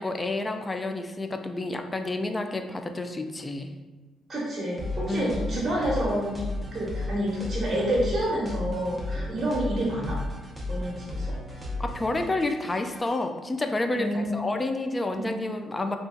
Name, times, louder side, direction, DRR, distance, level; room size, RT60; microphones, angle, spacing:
voice 1, 0.0-3.7 5.1-5.5 9.3-9.5 11.8-16.0, left 2 dB, 20° left, 6 dB, 0.3 m, -30 dB
voice 2, 4.3-6.4 6.7-10.2 10.7-11.4 13.9-14.4 15.1-15.3, right 1 dB, 40° right, -6 dB, 1.0 m, -28 dB
sound 1, 4.8-13.2, left 2 dB, 10° right, 0.7 m, -34 dB
2.6 x 2.4 x 3.7 m, 1.2 s
cardioid pair, 90°, 0 cm